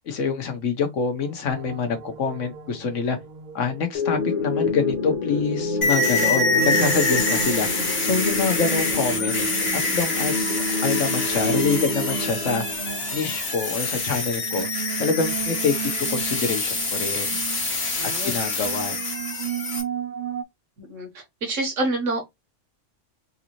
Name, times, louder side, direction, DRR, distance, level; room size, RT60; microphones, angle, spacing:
voice 1, 0.1-3.2 3.5-7.7 8.0-9.4 9.7-10.6 10.8-12.6 13.1-14.7 15.0-15.7 16.1-17.4 18.0-19.0, left 5 dB, 75° left, 1.2 m, -26 dB
sound 1, 1.2-20.4, right 8 dB, 60° right, 0.5 m, -35 dB
sound 2, 4.0-13.0, left 3 dB, 35° left, 1.0 m, -28 dB
sound 3, 5.8-19.8, left 3 dB, 55° left, 1.5 m, -26 dB
voice 2, 17.9-18.4 20.8-22.2, right 2 dB, 75° right, 1.5 m, -28 dB
3.9 x 2.6 x 2.9 m
omnidirectional pair, 1.3 m